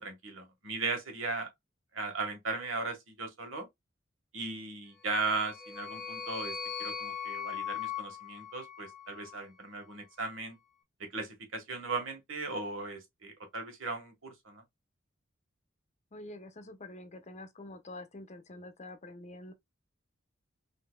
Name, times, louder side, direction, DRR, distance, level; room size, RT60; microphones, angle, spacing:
voice 1, 0.0-1.5 1.9-3.7 4.3-10.6 11.0-14.6, right 3 dB, 80° right, 1.6 m, -37 dB
sound 1, 5.1-9.4, left 8 dB, ahead, 1.0 m, -40 dB
voice 2, 16.1-19.5, left 1 dB, 35° left, 0.8 m, -46 dB
5.5 x 2.8 x 2.2 m
head